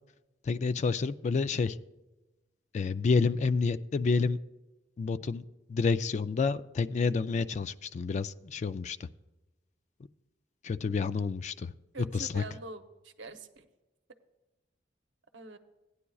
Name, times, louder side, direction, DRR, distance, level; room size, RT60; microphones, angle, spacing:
voice 1, 0.4-1.8 2.7-4.4 5.0-9.1 10.6-11.7 12.1-12.4, left 4 dB, 40° left, 14 dB, 0.3 m, -29 dB
voice 2, 11.9-13.7 15.3-15.6, right 3 dB, 90° right, 7 dB, 0.8 m, -44 dB
16.5 x 9.7 x 2.3 m, 1.1 s
head